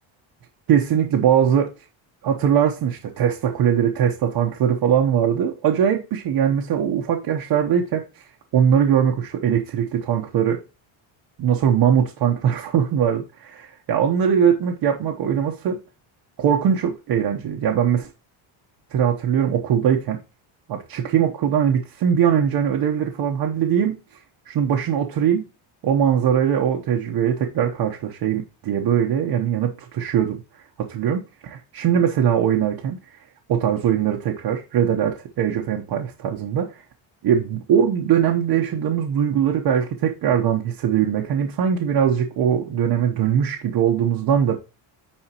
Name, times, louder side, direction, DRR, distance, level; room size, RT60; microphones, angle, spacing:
voice 1, 0.7-1.7 2.2-8.2 8.5-10.6 11.4-13.3 13.9-15.8 16.4-18.1 18.9-20.2 20.7-24.0 24.5-25.4 25.8-30.4 30.8-33.0 33.5-36.8 37.2-44.6, right 8 dB, 55° right, 1.1 m, -21 dB
10.0 x 4.3 x 2.9 m
cardioid pair, 150°, 48 cm